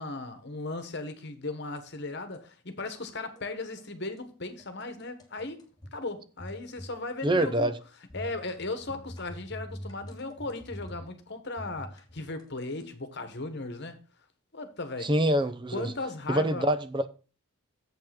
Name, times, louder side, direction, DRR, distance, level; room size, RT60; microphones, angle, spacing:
voice 1, 0.0-5.6 5.9-7.7 8.1-14.0 14.5-15.1 15.7-16.7, left 2 dB, 50° left, 1.3 m, -37 dB
sound 1, 2.1-2.5 3.1-3.5 3.8-4.3 4.6-6.0 6.4-7.0 7.2-7.5 8.1-11.2 11.6-12.9, equal, 20° left, 1.6 m, -45 dB
voice 2, 7.2-7.7 15.0-15.9 16.3-17.1, right 1 dB, 20° right, 0.5 m, -25 dB
7.5 x 5.6 x 5.9 m
head